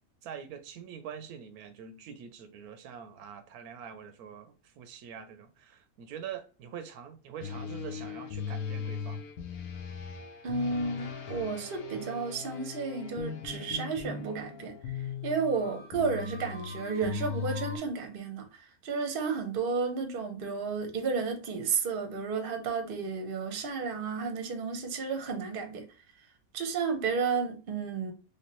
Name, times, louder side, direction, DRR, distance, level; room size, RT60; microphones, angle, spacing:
voice 1, 0.2-9.2, right 8 dB, 90° right, 1.1 m, -44 dB
sound 1, 7.4-17.8, left 6 dB, 80° left, 1.3 m, -39 dB
voice 2, 10.4-14.8 15.2-25.9 26.5-28.1, right 5 dB, 45° right, 0.8 m, -32 dB
3.2 x 3.1 x 2.9 m
omnidirectional pair, 1.5 m